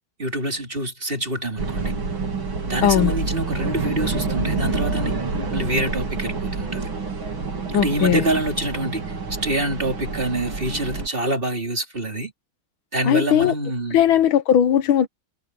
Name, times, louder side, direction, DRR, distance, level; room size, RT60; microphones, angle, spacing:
voice 1, 0.2-1.9 2.7-5.2 5.5-6.9 7.7-9.2 9.4-12.3 12.9-14.0, right 1 dB, 25° right, 3.2 m, -26 dB
sound 1, 1.6-11.1, right 3 dB, 90° right, 4.4 m, -27 dB
voice 2, 2.8-3.1 7.7-8.2 13.1-13.6 13.9-15.1, left 10 dB, 85° left, 1.8 m, -18 dB
omnidirectional pair, 2.2 m